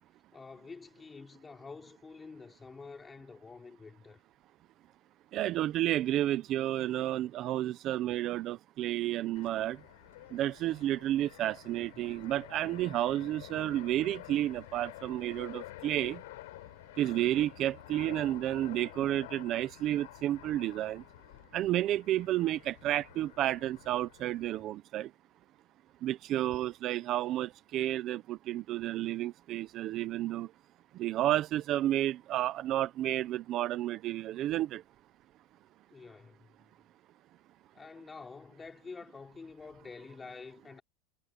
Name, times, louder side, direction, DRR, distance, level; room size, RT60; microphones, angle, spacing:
voice 1, 0.3-4.2 35.9-36.5 37.7-40.8, left 4 dB, 15° left, 3.7 m, -48 dB
voice 2, 5.3-9.8 10.3-16.2 17.0-21.0 21.5-25.1 26.0-30.5 30.9-34.8, right 13 dB, 40° right, 0.9 m, -31 dB
Fixed-wing aircraft airplane, 9.4-24.6, left 18 dB, 80° left, 7.6 m, -50 dB
supercardioid pair, 150°, 0 cm